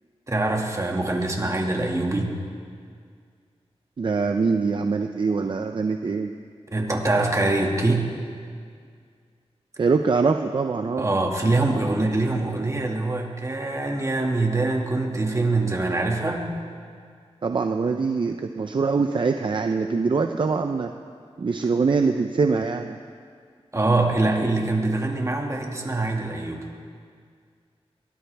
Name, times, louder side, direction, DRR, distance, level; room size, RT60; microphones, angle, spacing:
voice 1, 0.3-2.3 6.7-8.1 11.0-16.5 23.7-26.7, right 2 dB, 30° right, 1 dB, 2.0 m, -24 dB
voice 2, 4.0-6.3 9.8-11.1 17.4-20.9 21.4-23.0, right 4 dB, 50° right, 6 dB, 0.6 m, -23 dB
23.0 x 17.0 x 3.5 m, 2.1 s
wide cardioid pair, 95°, 11 cm